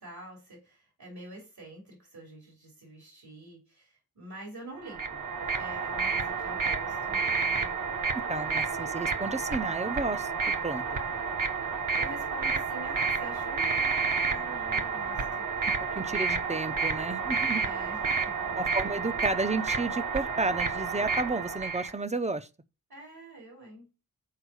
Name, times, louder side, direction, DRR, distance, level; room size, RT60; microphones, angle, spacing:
voice 1, 0.0-7.7 12.0-15.5 17.5-18.0 18.4-18.5 22.9-23.9, right 1 dB, 80° right, 3.6 m, -46 dB
sound 1, 4.8-21.9, right 5 dB, 60° right, 1.1 m, -30 dB
voice 2, 8.3-10.3 10.6-10.8 16.0-17.6 18.5-22.5, right 2 dB, 20° right, 0.6 m, -32 dB
6.6 x 4.6 x 6.2 m
wide cardioid pair, 100°, 37 cm